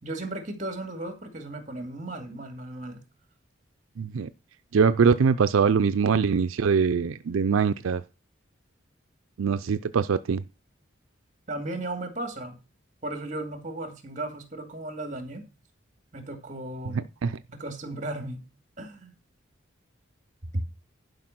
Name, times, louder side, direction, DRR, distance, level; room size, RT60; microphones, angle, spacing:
voice 1, 0.0-3.0 11.5-12.6 13.0-15.4 16.1-17.1 17.5-18.4 18.8-19.1 20.5-20.6, right 1 dB, 40° right, 2.4 m, -35 dB
voice 2, 4.0-4.3 4.7-8.0 9.4-10.4 16.9-17.4, right 5 dB, 85° right, 0.4 m, -23 dB
11.5 x 5.2 x 6.0 m
head